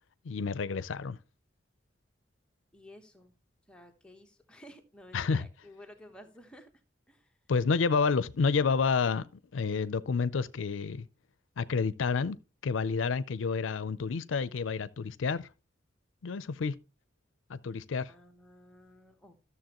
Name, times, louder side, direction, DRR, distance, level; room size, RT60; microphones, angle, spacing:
voice 1, 0.2-1.2 5.1-5.5 7.5-9.3 9.5-11.1 11.6-12.4 12.6-15.5 16.2-16.8 17.5-18.1, left 5 dB, 85° left, 0.5 m, -29 dB
voice 2, 2.7-3.3 3.7-6.8 7.1-7.4 18.1-19.4, equal, 5° left, 1.1 m, -53 dB
13.0 x 7.0 x 3.0 m
head